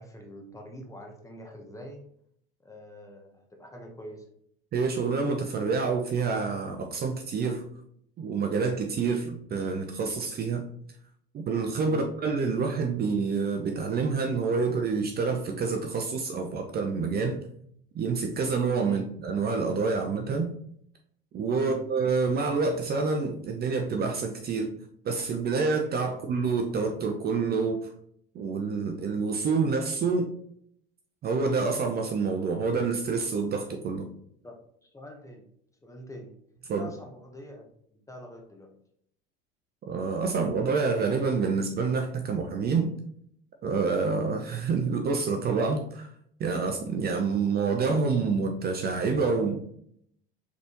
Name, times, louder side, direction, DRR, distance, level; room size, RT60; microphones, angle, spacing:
voice 1, 0.0-2.0 2.6-4.3 11.9-12.1 18.9-19.1 21.6-21.8 34.4-34.6 34.8-35.5 35.8-36.3 36.7-37.7 38.1-38.7, equal, 10° left, 2 dB, 1.0 m, -44 dB
voice 2, 4.7-7.6 8.2-10.6 11.3-17.4 17.9-20.5 21.3-24.7 25.0-27.8 28.3-30.3 31.2-34.1 36.7-36.9 39.9-42.9 43.6-46.1 46.4-49.6, right 4 dB, 35° right, 4 dB, 0.6 m, -27 dB
4.1 x 3.4 x 3.0 m, 0.67 s
hypercardioid pair, 95°, 29 cm